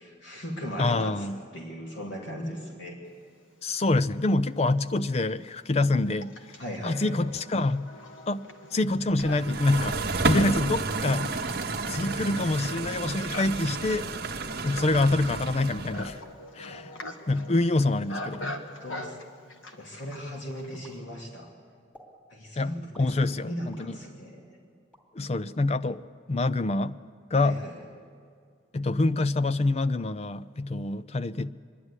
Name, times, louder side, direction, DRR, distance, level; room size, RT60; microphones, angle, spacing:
voice 1, 0.0-1.3 1.5-3.0 6.6-7.2 16.7-16.9 17.4-17.6 18.0-18.1 18.4-19.2 19.8-21.5 22.3-24.6 27.4-27.9, equal, 75° left, 2.7 m, -38 dB
voice 2, 0.8-1.4 3.6-6.3 6.8-7.9 8.3-8.4 8.7-10.0 10.2-11.5 11.9-14.1 14.6-16.2 16.6-16.9 17.3-18.5 22.6-24.0 25.2-26.0 26.3-27.0 27.3-27.6 28.7-31.5, left 2 dB, 30° left, 0.4 m, -26 dB
Livestock farm animals working animals, 4.2-4.3 5.1-21.0, left 1 dB, 90° left, 1.6 m, -43 dB
sound 1, 9.2-16.2, right 3 dB, 50° right, 1.0 m, -31 dB
sound 2, 20.8-21.5 21.9-22.2 22.9-23.9 24.4-25.5, equal, 5° left, 2.7 m, -55 dB
25.5 x 11.0 x 9.8 m
head